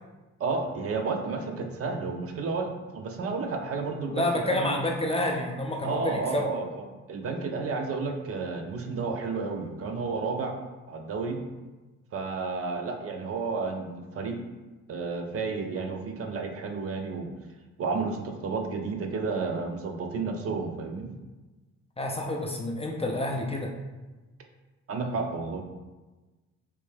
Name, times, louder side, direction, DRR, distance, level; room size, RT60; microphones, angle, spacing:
voice 1, 0.4-4.8 5.8-10.5 10.9-11.4 12.1-14.4 14.9-17.3 17.8-21.1 24.9-25.6, right 4 dB, 50° right, 4 dB, 0.5 m, -31 dB
voice 2, 4.1-6.5 22.0-23.7, left 1 dB, 20° left, 1 dB, 0.4 m, -29 dB
3.2 x 2.6 x 3.3 m, 1.2 s
cardioid pair, 90°, 30 cm